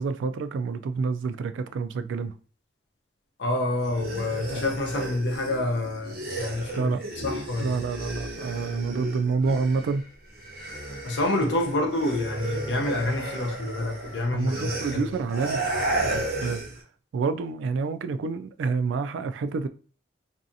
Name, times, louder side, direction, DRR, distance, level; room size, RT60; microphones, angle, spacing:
voice 1, 0.0-2.3 6.8-7.0 7.6-10.1 14.3-15.6 16.1-16.6 17.1-19.7, right 4 dB, 90° right, 0.3 m, -28 dB
voice 2, 3.4-7.8 11.0-15.2, left 1 dB, 75° left, 0.7 m, -28 dB
sound 1, 3.8-10.0 10.3-16.8, right 2 dB, 55° right, 0.7 m, -33 dB
2.7 x 2.3 x 2.5 m
head